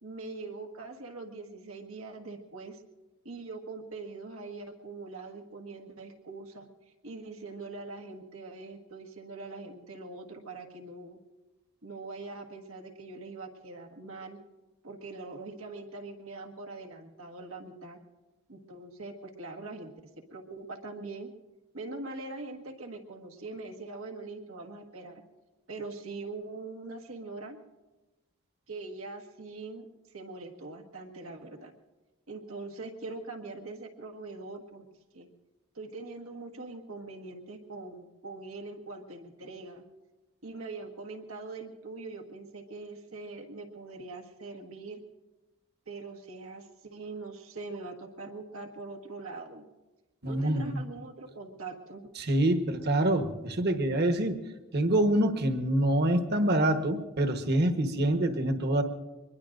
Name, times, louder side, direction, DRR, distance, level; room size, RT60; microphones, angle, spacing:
voice 1, 0.0-2.8 3.2-6.7 7.0-11.2 11.8-14.4 14.8-18.0 18.5-19.9 20.3-21.3 21.7-25.2 25.7-27.6 28.7-29.9 30.1-31.7 32.3-34.9 35.1-35.3 35.7-39.8 40.4-45.0 45.9-49.7 50.2-52.0, right 3 dB, 90° right, 3 dB, 1.6 m, -42 dB
voice 2, 50.2-50.8 52.2-54.4 54.7-58.8, right 1 dB, 50° right, 6 dB, 1.3 m, -26 dB
24.0 x 21.0 x 2.6 m, 1.1 s
head